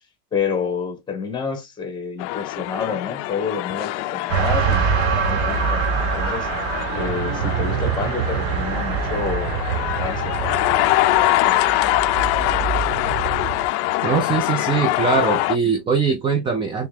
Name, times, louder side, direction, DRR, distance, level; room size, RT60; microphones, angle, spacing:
voice 1, 0.3-4.9 5.2-5.8 6.1-6.5 6.9-10.8 11.3-11.5, left 5 dB, 15° left, 1.4 m, -29 dB
sound 1, 2.2-15.6, left 16 dB, 55° left, 0.4 m, -24 dB
sound 2, 4.3-13.7, right 7 dB, 65° right, 0.9 m, -25 dB
voice 2, 14.0-16.9, right 5 dB, 15° right, 0.5 m, -21 dB
3.5 x 3.3 x 3.3 m
cardioid pair, 160°, 31 cm